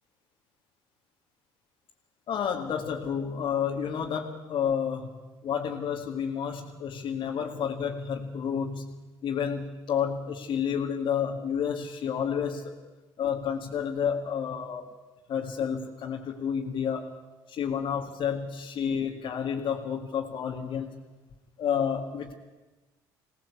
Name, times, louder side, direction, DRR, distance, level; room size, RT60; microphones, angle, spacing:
voice 1, 2.3-5.1 5.4-8.9 9.2-12.7 13.2-14.9 15.3-17.1 17.5-21.0 21.6-22.3, left 7 dB, 55° left, 0 dB, 2.0 m, -30 dB
22.5 x 17.5 x 8.4 m, 1.2 s
supercardioid pair, 75°, 10 cm